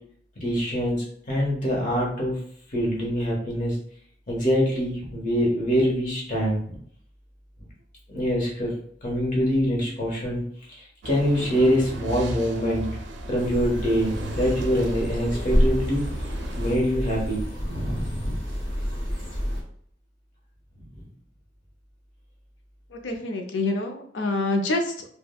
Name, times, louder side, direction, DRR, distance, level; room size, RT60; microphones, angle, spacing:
voice 1, 0.4-2.4 2.7-3.8 4.3-6.8 8.1-10.4 10.7-12.9 13.3-16.0 16.6-18.3 20.9-21.1, equal, 45° left, -3 dB, 1.1 m, -25 dB
sound 1, 11.0-16.8, right 2 dB, 70° right, 0.4 m, -36 dB
sound 2, 13.4-19.6, equal, 20° left, 1.4 m, -28 dB
voice 2, 22.9-25.1, left 2 dB, 90° left, 4 dB, 0.5 m, -27 dB
3.3 x 2.2 x 2.2 m, 0.62 s
head